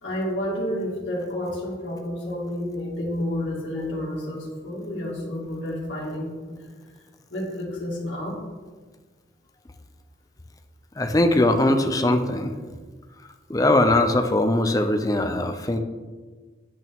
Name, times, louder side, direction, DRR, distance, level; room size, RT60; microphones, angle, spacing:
voice 1, 0.0-6.6 7.3-8.4, left 1 dB, 80° left, -4 dB, 2.2 m, -30 dB
voice 2, 11.0-12.5 13.5-15.8, left 1 dB, 20° left, 6 dB, 0.6 m, -21 dB
8.7 x 8.2 x 3.6 m, 1.4 s
head